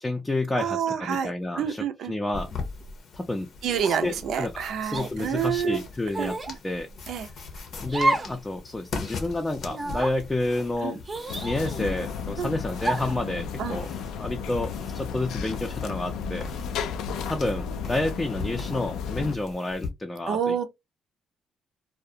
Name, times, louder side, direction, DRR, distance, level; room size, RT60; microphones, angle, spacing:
voice 1, 0.0-2.5 3.1-3.5 3.8-4.5 4.8-6.3 6.6-6.9 7.8-11.0 11.4-13.9 14.2-16.5 17.3-20.5, left 2 dB, 15° left, 0.4 m, -29 dB
voice 2, 0.5-2.1 3.6-5.8 6.2-6.3 7.1-7.3 10.8-11.0 12.4-12.6 13.6-13.8 20.3-20.6, right 8 dB, 75° right, 0.5 m, -28 dB
sound 1, 2.3-19.9, left 4 dB, 65° left, 0.7 m, -40 dB
sound 2, 3.8-4.2 4.9-5.1 6.1-6.6 7.9-8.4 8.8-8.9 9.7-10.2 11.1-12.0 12.8-13.2, right 2 dB, 30° right, 0.6 m, -29 dB
sound 3, 11.3-19.4, left 6 dB, 85° left, 0.3 m, -34 dB
2.4 x 2.1 x 2.7 m
cardioid pair, 90°, 0 cm